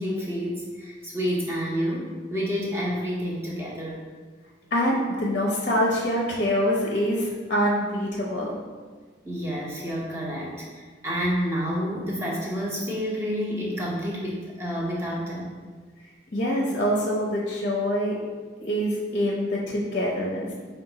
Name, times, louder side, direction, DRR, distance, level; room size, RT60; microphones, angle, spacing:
voice 1, 0.0-4.0 9.2-15.6, equal, 15° right, -5 dB, 0.8 m, -29 dB
voice 2, 4.7-8.6 16.3-18.1 18.6-20.5, equal, 40° left, -2 dB, 0.6 m, -25 dB
5.1 x 2.2 x 3.9 m, 1.5 s
head